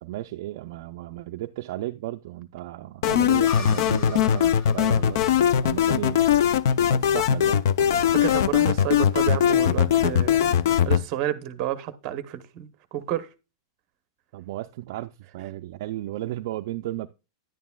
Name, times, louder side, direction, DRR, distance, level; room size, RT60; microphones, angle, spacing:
voice 1, 0.0-6.3 6.7-7.6 14.3-17.1, right 15 dB, 45° right, 0.4 m, -34 dB
sound 1, 3.0-11.0, left 9 dB, 50° left, 0.4 m, -20 dB
sound 2, 3.5-7.0, left 5 dB, 35° left, 2.1 m, -42 dB
voice 2, 8.0-10.4 10.8-13.3, right 11 dB, 25° right, 0.8 m, -30 dB
10.5 x 9.3 x 2.3 m
supercardioid pair, 180°, 2 cm